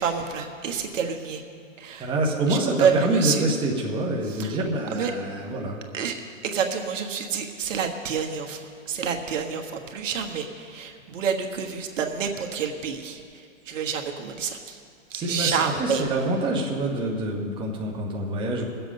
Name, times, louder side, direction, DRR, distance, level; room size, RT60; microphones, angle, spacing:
voice 1, 0.0-1.4 1.8-2.1 2.5-3.5 4.2-4.6 4.9-5.1 5.9-14.8 15.1-16.0, right 6 dB, 65° right, 4 dB, 1.5 m, -28 dB
voice 2, 2.0-5.8 15.1-18.7, right 1 dB, 10° right, -1 dB, 1.1 m, -26 dB
21.0 x 7.8 x 5.3 m, 2.4 s
hypercardioid pair, 145°, 40 cm